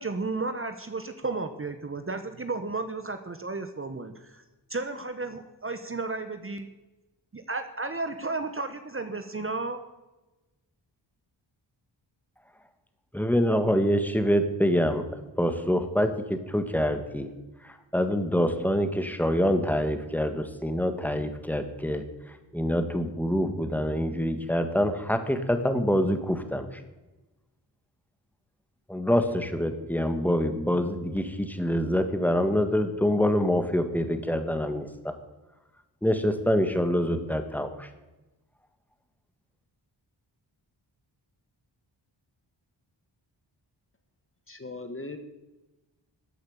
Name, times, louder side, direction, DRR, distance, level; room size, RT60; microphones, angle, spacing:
voice 1, 0.0-4.4 4.7-6.7 7.3-9.8, right 3 dB, 30° right, 8 dB, 1.0 m, -33 dB
voice 2, 13.1-15.0 15.4-17.3 17.6-22.0 22.5-26.8 28.9-35.1 36.0-37.9, equal, 5° left, 8 dB, 1.7 m, -26 dB
voice 3, 44.5-45.2, left 2 dB, 25° left, 8 dB, 1.6 m, -38 dB
14.0 x 8.7 x 7.3 m, 1.1 s
wide cardioid pair, 75°, 46 cm